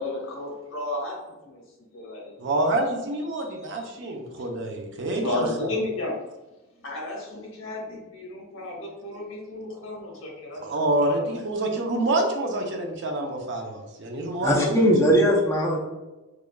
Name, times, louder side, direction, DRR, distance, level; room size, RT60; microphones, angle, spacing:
voice 1, 0.0-1.6 1.9-2.3 3.3-3.9 5.2-6.1 6.8-10.7 11.1-11.4, left 2 dB, 65° left, -1 dB, 1.1 m, -33 dB
voice 2, 2.4-5.7 10.6-14.8, right 1 dB, 55° right, 2 dB, 0.6 m, -27 dB
voice 3, 14.4-15.8, equal, 15° left, -2 dB, 0.5 m, -19 dB
4.9 x 2.5 x 2.2 m, 1.1 s
head